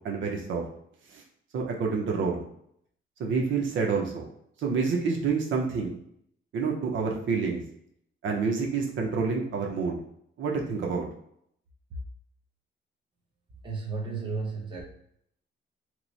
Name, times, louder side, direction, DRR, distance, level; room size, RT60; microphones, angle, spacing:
voice 1, 0.0-0.6 1.1-1.2 1.5-2.4 3.2-4.2 4.6-5.9 6.5-7.6 8.2-10.0 10.4-11.1, right 5 dB, 75° right, 1 dB, 0.7 m, -28 dB
voice 2, 13.6-14.8, right 4 dB, 25° right, -1 dB, 0.8 m, -33 dB
3.1 x 2.0 x 3.9 m, 0.70 s
cardioid pair, 145°, 20 cm